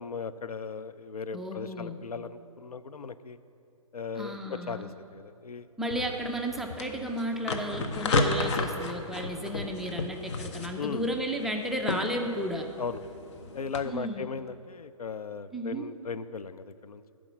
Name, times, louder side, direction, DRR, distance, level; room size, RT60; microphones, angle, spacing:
voice 1, 0.0-3.4 3.9-5.7 10.8-11.1 12.8-13.0 13.5-17.1, left 5 dB, 85° left, 13 dB, 0.5 m, -37 dB
voice 2, 1.3-2.0 4.1-4.9 5.8-12.7 13.8-14.3 15.5-15.9, equal, ahead, 2 dB, 0.3 m, -33 dB
sound 1, 5.9-13.8, left 3 dB, 50° left, 0.9 m, -33 dB
10.5 x 5.0 x 7.2 m, 2.7 s
figure-of-eight pair, 130°, 19 cm